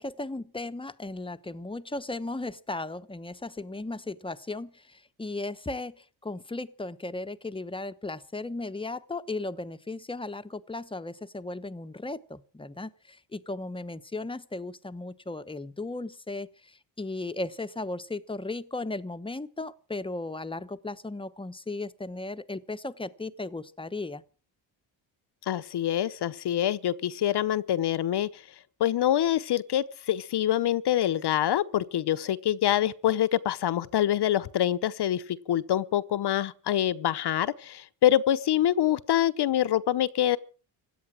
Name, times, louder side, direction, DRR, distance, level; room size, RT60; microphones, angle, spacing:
voice 1, 0.0-24.2, left 2 dB, 10° left, 0.9 m, -36 dB
voice 2, 25.5-28.4 28.8-40.4, left 11 dB, 55° left, 0.8 m, -25 dB
17.0 x 11.0 x 7.4 m
cardioid pair, 115°, 47 cm